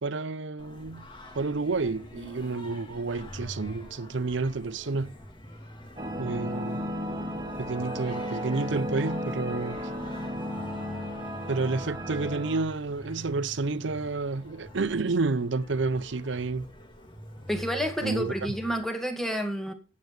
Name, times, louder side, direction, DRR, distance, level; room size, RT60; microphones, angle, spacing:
voice 1, 0.0-1.1 1.3-5.1 6.2-6.8 7.6-9.8 11.5-16.7 18.0-18.5, right 3 dB, 70° right, 0.7 m, -30 dB
Singing, 0.6-18.8, left 1 dB, 25° left, 2.3 m, -45 dB
sound 1, 6.0-12.6, equal, 25° right, 1.9 m, -34 dB
voice 2, 17.5-19.7, equal, ahead, 2.0 m, -29 dB
16.0 x 8.5 x 3.2 m
head